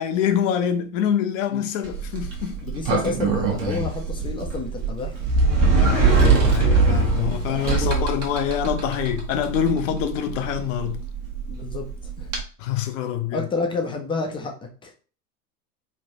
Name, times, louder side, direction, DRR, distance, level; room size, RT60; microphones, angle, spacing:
voice 1, 0.0-2.5 5.7-11.0 12.6-13.5, left 9 dB, 55° left, 0.7 m, -25 dB
Sliding door, 1.8-12.4, right 4 dB, 45° right, 1.1 m, -23 dB
voice 2, 2.6-5.3 7.1-8.0 11.5-12.3 13.3-14.9, left 4 dB, 10° left, 0.4 m, -30 dB
3.2 x 2.5 x 2.8 m
figure-of-eight pair, 85°, 45 cm